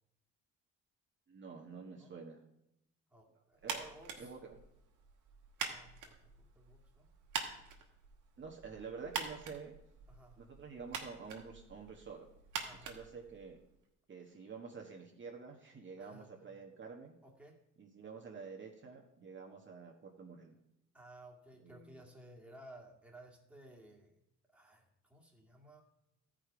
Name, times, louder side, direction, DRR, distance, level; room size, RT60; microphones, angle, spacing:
voice 1, 1.3-2.4 3.6-3.9 4.2-4.6 8.4-9.7 10.4-12.3 12.9-13.6 14.1-17.1 17.8-20.6 21.6-22.0, right 5 dB, 40° right, 1 dB, 1.3 m, -49 dB
voice 2, 3.1-4.4 5.7-7.1 10.1-10.4 12.6-13.0 16.0-16.5 17.2-17.6 20.9-24.2 24.5-25.8, right 1 dB, 5° right, -1 dB, 2.0 m, -57 dB
sound 1, 3.6-13.8, right 6 dB, 80° right, 1.5 m, -45 dB
13.5 x 5.1 x 5.0 m, 0.82 s
cardioid pair, 90°, 30 cm